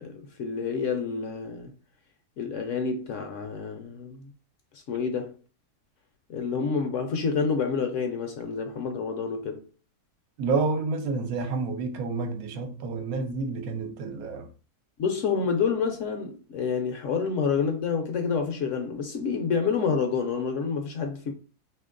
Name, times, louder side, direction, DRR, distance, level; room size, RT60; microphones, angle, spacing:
voice 1, 0.0-1.7 2.4-4.3 4.9-5.4 6.3-9.6 15.0-21.3, left 5 dB, 65° left, 0.8 m, -28 dB
voice 2, 10.4-14.5, right 4 dB, 75° right, 1.0 m, -29 dB
2.8 x 2.6 x 3.7 m
omnidirectional pair, 1.6 m